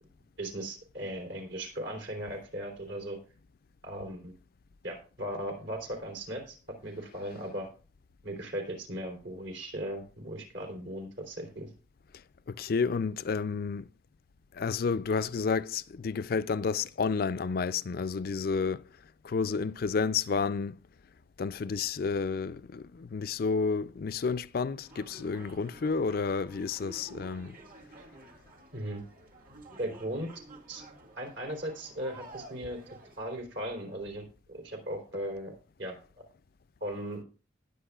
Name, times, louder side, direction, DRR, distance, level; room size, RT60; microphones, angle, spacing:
voice 1, 0.4-3.2 3.8-4.3 4.8-6.6 6.8-7.7 8.2-11.7 28.7-29.0 29.8-30.3 30.7-30.8 31.2-32.8 33.2-36.0 36.8-37.2, right 1 dB, 65° right, 3.5 m, -37 dB
voice 2, 12.5-13.9 14.5-18.8 19.2-20.8 21.4-27.5, left 5 dB, 50° left, 0.4 m, -30 dB
sound 1, 24.8-33.3, right 1 dB, 45° right, 2.1 m, -51 dB
19.5 x 8.0 x 2.4 m
head